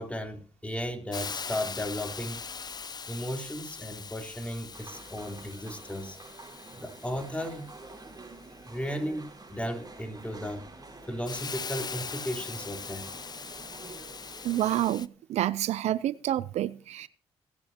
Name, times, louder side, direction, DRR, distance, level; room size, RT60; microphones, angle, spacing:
voice 1, 0.0-2.4 3.1-6.2 6.7-7.6 8.7-10.6 11.1-13.1, equal, 10° left, 3 dB, 3.7 m, -35 dB
Hiss, 1.1-15.1, left 5 dB, 35° left, 0.7 m, -41 dB
sound 1, 4.7-14.9, right 3 dB, 35° right, 5.1 m, -48 dB
voice 2, 14.4-17.1, right 13 dB, 75° right, 18 dB, 0.5 m, -28 dB
25.5 x 9.6 x 2.9 m, 0.37 s
supercardioid pair, 55°, 11 cm